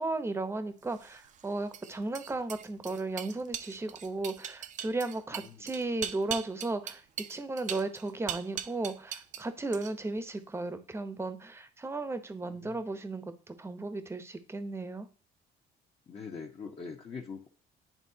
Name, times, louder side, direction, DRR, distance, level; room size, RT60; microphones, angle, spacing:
voice 1, 0.0-7.0 7.3-15.1, right 2 dB, 15° right, 9 dB, 0.8 m, -35 dB
sound 1, 0.9-9.5 9.7-10.2, right 9 dB, 50° right, 0.6 m, -40 dB
voice 2, 5.3-5.6 12.5-12.8 16.1-17.5, left 5 dB, 35° left, 0 dB, 1.1 m, -43 dB
10.5 x 3.5 x 2.8 m, 0.39 s
cardioid pair, 110°, 17 cm